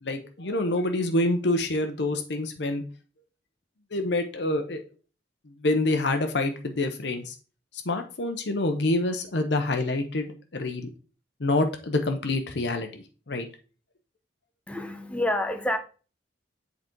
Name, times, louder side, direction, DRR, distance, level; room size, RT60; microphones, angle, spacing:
voice 1, 0.0-2.8 3.9-4.8 5.6-7.3 7.8-10.9 11.4-13.5, left 2 dB, 65° left, 0.9 m, -27 dB
voice 2, 14.7-15.8, left 1 dB, 5° left, 0.9 m, -28 dB
7.7 x 4.0 x 4.6 m
head